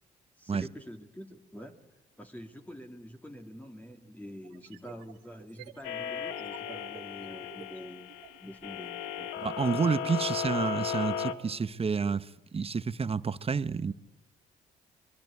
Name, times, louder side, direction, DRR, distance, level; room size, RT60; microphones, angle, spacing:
voice 1, 0.4-1.8 2.2-8.1 8.4-9.3, equal, 10° left, 2.2 m, -46 dB
sound 1, 4.4-8.4, right 14 dB, 90° right, 1.5 m, -52 dB
sound 2, 5.8-11.3, left 7 dB, 90° left, 1.3 m, -35 dB
voice 2, 9.4-13.9, right 5 dB, 35° right, 1.0 m, -30 dB
27.0 x 22.0 x 9.7 m
supercardioid pair, 55°, 18 cm